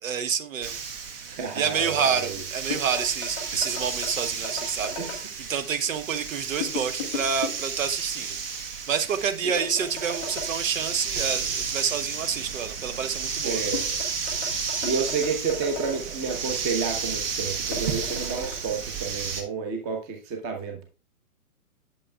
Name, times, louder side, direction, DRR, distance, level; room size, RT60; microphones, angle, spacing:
voice 1, 0.0-0.8 1.5-5.2 5.5-8.4 8.9-13.6, right 7 dB, 60° right, 1.0 m, -28 dB
sound 1, 0.6-19.4, right 6 dB, 40° right, 1.2 m, -32 dB
voice 2, 1.2-2.4 5.0-5.2 9.4-9.6 13.4-14.0 14.5-20.8, right 5 dB, 20° right, 1.0 m, -30 dB
sound 2, 2.7-5.2 6.6-7.6 9.6-10.5 13.7-16.0 17.7-18.5, left 4 dB, 10° left, 0.4 m, -36 dB
8.5 x 6.9 x 2.3 m
figure-of-eight pair, 120°, 44 cm